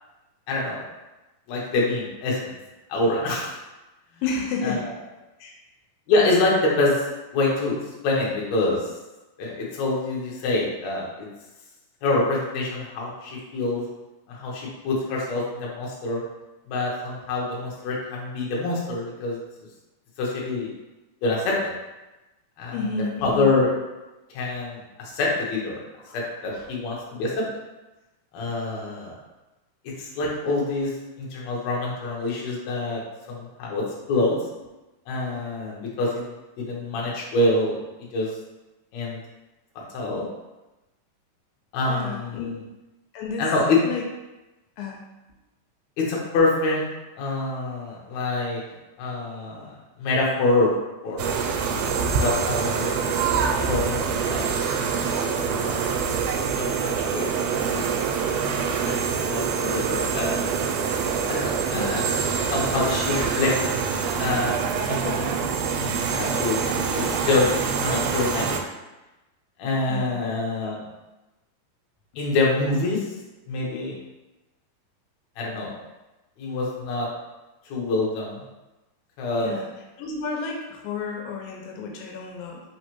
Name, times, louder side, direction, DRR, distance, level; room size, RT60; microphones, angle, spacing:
voice 1, 0.5-0.8 1.5-2.5 2.9-3.5 4.6-4.8 6.1-7.0 7.3-8.9 9.4-11.3 12.0-13.8 14.3-16.2 16.7-19.4 20.2-20.7 21.2-21.6 22.6-22.8 23.2-23.7 24.3-25.8 26.1-27.4 28.3-29.2 29.8-33.0 33.3-34.4 35.1-36.3 36.6-38.3 38.9-39.2 39.9-40.2 41.7-42.6 43.4-43.8 46.0-46.8 47.2-48.6 49.0-49.7 50.0-50.7 51.0-51.4 52.2-52.9 53.7-54.4 55.3-55.9 56.4-57.4 57.7-57.8 58.8-60.3 61.3-62.1 62.5-63.6 64.2-64.5 64.9-65.4 65.8-67.5 67.8-68.6 69.6-70.9 72.2-73.0 73.5-74.0 75.4-75.7 76.4-77.1 77.7-78.4 79.2-79.6, left 2 dB, 70° left, -3 dB, 1.8 m, -26 dB
voice 2, 4.2-4.9 5.4-5.6 22.7-23.5 26.1-26.2 26.5-26.6 41.9-42.5 43.1-43.5 43.8-44.0 44.8-45.0 61.7-62.1 69.9-70.2 79.4-79.7 80.0-82.6, left 4 dB, 85° left, 1 dB, 2.3 m, -31 dB
sound 1, 51.2-68.6, right 6 dB, 90° right, 2.3 m, -25 dB
5.0 x 3.2 x 2.9 m, 1.0 s
omnidirectional pair, 4.0 m